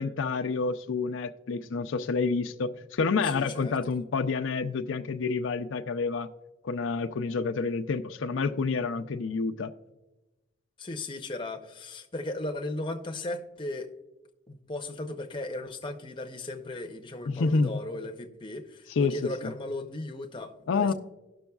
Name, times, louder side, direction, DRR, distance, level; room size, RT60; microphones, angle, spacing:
voice 1, 0.0-6.3 6.6-9.7 17.3-17.8 19.0-19.2 20.7-20.9, left 4 dB, 85° left, 0.5 m, -28 dB
voice 2, 3.2-3.8 10.8-13.9 14.5-20.9, left 2 dB, 25° left, 0.6 m, -36 dB
17.5 x 6.2 x 2.3 m
head